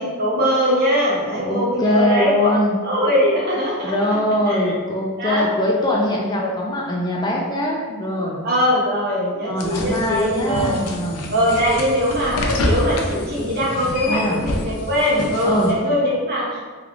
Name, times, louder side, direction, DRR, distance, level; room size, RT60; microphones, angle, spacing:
voice 1, 0.0-2.5 2.8-3.9 4.5-4.8 5.2-5.5 6.4-6.5 8.4-10.8 11.3-16.6, equal, 45° right, -6 dB, 1.0 m, -21 dB
voice 2, 1.4-2.8 3.8-8.5 9.5-11.3 13.8-14.4 15.4-15.7, left 1 dB, 20° left, -2 dB, 0.4 m, -22 dB
sound 1, 9.6-15.7, left 1 dB, 85° left, 0.5 m, -27 dB
3.3 x 2.3 x 3.6 m, 1.5 s
head